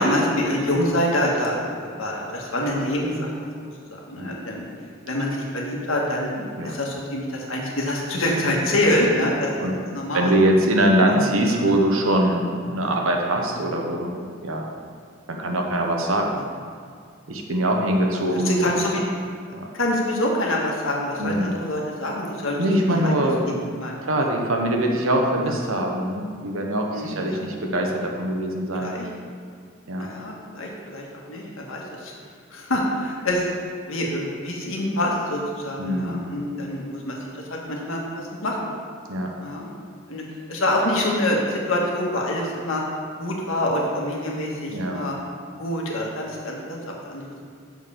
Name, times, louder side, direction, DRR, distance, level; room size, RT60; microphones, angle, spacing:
voice 1, 0.0-3.6 3.9-4.7 5.1-6.3 6.6-10.4 11.0-11.3 12.8-12.9 18.3-19.0 19.7-24.3 26.9-27.4 28.7-29.1 30.0-32.1 32.5-33.5 33.9-38.7 39.4-39.7 40.1-40.2 40.5-42.8 43.2-45.1 45.6-47.4, left 1 dB, 80° left, -2 dB, 1.5 m, -26 dB
voice 2, 10.1-14.7 15.3-16.4 17.3-18.7 19.5-19.7 21.2-21.5 22.6-23.5 24.1-29.0 29.9-30.1 35.8-36.2 39.1-39.3 44.7-45.1, right 1 dB, 80° right, 1 dB, 1.1 m, -23 dB
6.4 x 5.3 x 7.0 m, 2.1 s
head